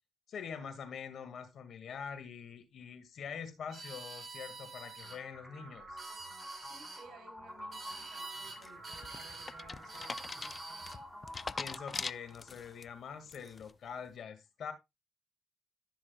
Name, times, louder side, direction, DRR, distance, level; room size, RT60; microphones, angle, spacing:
voice 1, 0.3-6.0 11.6-14.7, left 6 dB, 60° left, 2.0 m, -44 dB
sound 1, 3.7-5.2 5.8-7.0 7.7-8.6 8.8-9.5 9.9-11.0, right 3 dB, 30° right, 6.2 m, -47 dB
sound 2, 5.0-13.0, equal, ahead, 5.1 m, -49 dB
voice 2, 6.6-10.8, right 3 dB, 70° right, 3.4 m, -58 dB
sound 3, 8.6-12.8 13.3-13.7, left 4 dB, 30° left, 0.4 m, -42 dB
14.5 x 6.2 x 2.3 m
cardioid pair, 90°, 0 cm